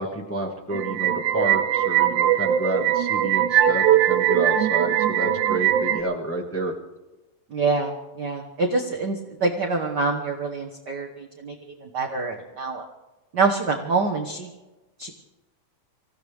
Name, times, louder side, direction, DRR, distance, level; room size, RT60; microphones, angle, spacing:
voice 1, 0.0-6.7, right 1 dB, 10° left, -1 dB, 0.7 m, -29 dB
sound 1, 0.7-6.0, right 11 dB, 80° right, 2.3 m, -21 dB
voice 2, 7.5-11.5 11.8-12.8 13.3-14.5 15.0-15.1, right 3 dB, 60° right, 2 dB, 1.1 m, -26 dB
26.0 x 16.0 x 3.5 m, 1.1 s
omnidirectional pair, 3.6 m